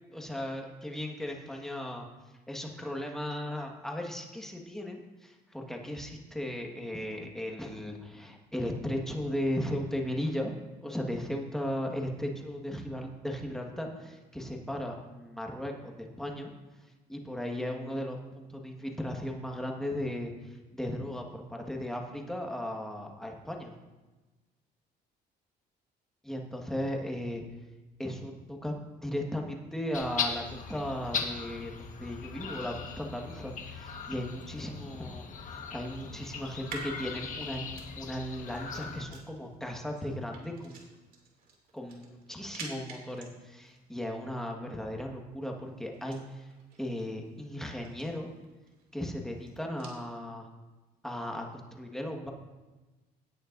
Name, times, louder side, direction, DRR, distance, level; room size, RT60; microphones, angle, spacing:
voice 1, 0.1-2.1 2.5-10.5 10.8-16.5 17.1-23.7 26.2-27.4 28.0-40.8 41.7-46.5 46.8-48.3 48.9-50.5 51.0-52.3, left 1 dB, 5° left, 1 dB, 1.6 m, -36 dB
sound 1, 29.9-39.0, left 6 dB, 50° left, 1.4 m, -39 dB
unlock and lock a door with keys, 34.2-50.0, right 3 dB, 60° right, 2.6 m, -52 dB
17.5 x 8.8 x 2.6 m, 1.2 s
cardioid pair, 110°, 17 cm